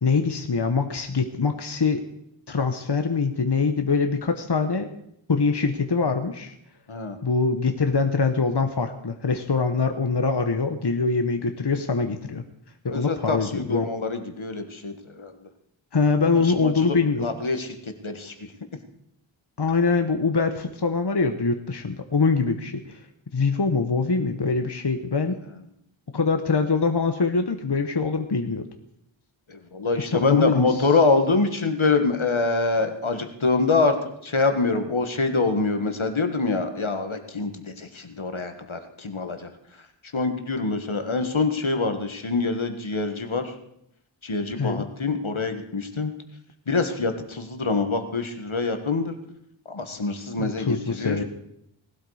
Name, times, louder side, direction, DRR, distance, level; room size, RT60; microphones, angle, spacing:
voice 1, 0.0-2.0 2.5-4.9 5.3-6.5 7.2-12.4 12.8-13.9 15.9-17.3 19.6-23.0 23.3-25.3 26.1-28.7 30.1-31.0 44.6-44.9 50.4-51.2, left 4 dB, 55° left, 6 dB, 1.1 m, -23 dB
voice 2, 12.9-15.3 16.6-17.7 18.0-18.3 29.5-34.0 34.2-39.4 40.1-43.4 44.2-46.1 46.7-49.2 49.7-51.2, left 3 dB, 75° left, 7 dB, 1.6 m, -25 dB
19.0 x 12.0 x 4.9 m, 0.75 s
wide cardioid pair, 40°, 48 cm